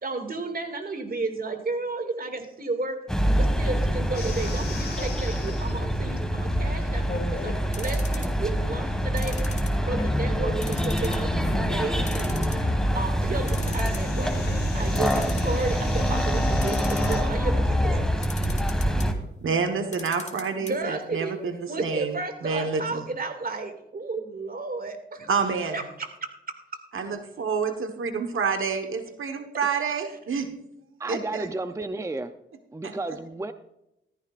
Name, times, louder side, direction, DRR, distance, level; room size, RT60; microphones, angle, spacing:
voice 1, 0.0-3.0 3.4-9.4 9.9-12.5 12.9-14.3 14.7-18.8 20.6-21.3 21.7-25.3 25.7-26.1, right 3 dB, 45° right, 5 dB, 2.3 m, -33 dB
sound 1, 3.1-19.1, equal, 5° left, 1.9 m, -25 dB
sound 2, 4.1-17.2, left 3 dB, 50° left, 3.3 m, -38 dB
sound 3, 7.7-8.5 9.2-10.1 10.6-11.3 11.6-11.7 12.1-12.9 13.2-13.3 13.5-14.1 14.9-15.8 16.5-17.4 18.2-19.1 19.8-20.7 21.0-21.1 21.4-21.5, left 3 dB, 35° left, 2.1 m, -40 dB
voice 2, 19.4-22.2 22.4-23.1 25.3-25.8 26.9-30.5 31.1-31.5 32.8-32.9, right 5 dB, 80° right, 6 dB, 1.3 m, -28 dB
voice 3, 31.0-32.3 32.7-33.5, right 2 dB, 15° right, 10 dB, 0.6 m, -32 dB
14.5 x 14.5 x 2.5 m, 0.85 s
cardioid pair, 70°, 21 cm